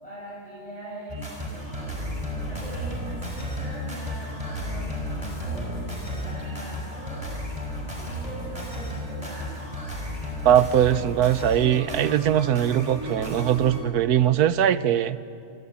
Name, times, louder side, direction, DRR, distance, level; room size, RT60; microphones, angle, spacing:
voice 1, 0.0-2.0 2.3-7.3 7.9-9.6, right 1 dB, 25° left, -8 dB, 7.3 m, -41 dB
sound 1, 1.1-13.8, equal, 20° right, 5.4 m, -33 dB
voice 2, 10.4-15.2, right 10 dB, 85° right, 14 dB, 1.4 m, -21 dB
28.5 x 23.5 x 8.5 m, 2.5 s
omnidirectional pair, 1.6 m